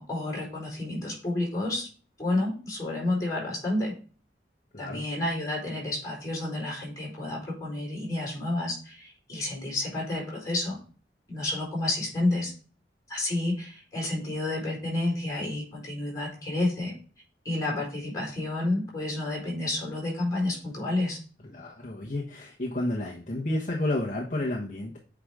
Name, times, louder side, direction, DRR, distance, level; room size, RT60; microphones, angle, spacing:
voice 1, 0.0-1.9 2.2-3.9 4.8-10.8 11.3-12.5 13.1-16.9 17.4-21.2, left 2 dB, 20° left, -4 dB, 4.5 m, -30 dB
voice 2, 21.5-25.0, left 1 dB, 45° left, -1 dB, 1.1 m, -31 dB
8.6 x 4.9 x 3.7 m, 0.39 s
head